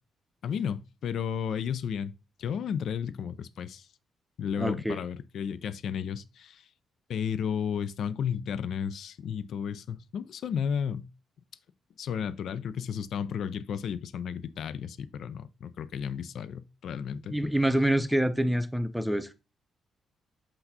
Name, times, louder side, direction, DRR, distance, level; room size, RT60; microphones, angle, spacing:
voice 1, 0.4-2.1 2.4-3.9 4.4-6.6 7.1-11.1 12.0-17.4, left 7 dB, 65° left, 0.4 m, -33 dB
voice 2, 4.6-5.0 17.1-19.3, right 1 dB, ahead, 0.8 m, -26 dB
6.7 x 5.7 x 2.8 m
hypercardioid pair, 45°, 0 cm